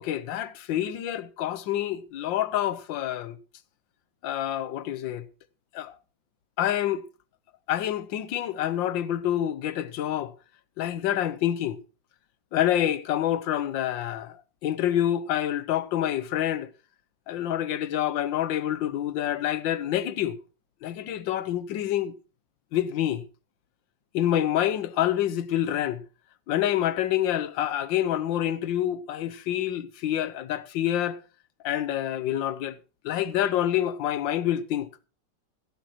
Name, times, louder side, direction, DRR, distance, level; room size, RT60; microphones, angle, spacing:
voice 1, 0.0-3.4 4.2-5.2 5.7-5.9 6.6-7.0 7.7-10.3 10.8-11.8 12.5-16.7 17.3-20.4 20.8-22.1 22.7-23.2 24.1-26.0 26.5-31.2 31.6-32.8 33.0-35.1, left 11 dB, 85° left, 1.5 m, -27 dB
16.5 x 12.0 x 2.9 m
omnidirectional pair, 2.0 m